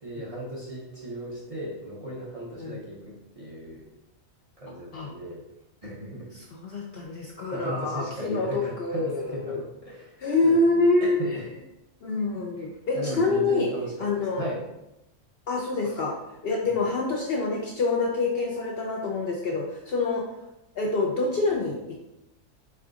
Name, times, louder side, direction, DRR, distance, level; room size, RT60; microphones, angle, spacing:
voice 1, 0.0-3.9 4.6-5.4 5.8-6.3 7.1-7.2 7.5-11.5 12.6-12.7 12.9-14.6 15.8-16.0, equal, 35° right, -6 dB, 0.6 m, -36 dB
voice 2, 6.3-9.6 10.2-11.2 12.0-13.7 14.0-14.5 15.5-16.1 16.4-20.2 20.8-22.0, left 3 dB, 60° left, -1 dB, 0.6 m, -26 dB
4.5 x 3.6 x 2.4 m, 0.89 s
omnidirectional pair, 1.4 m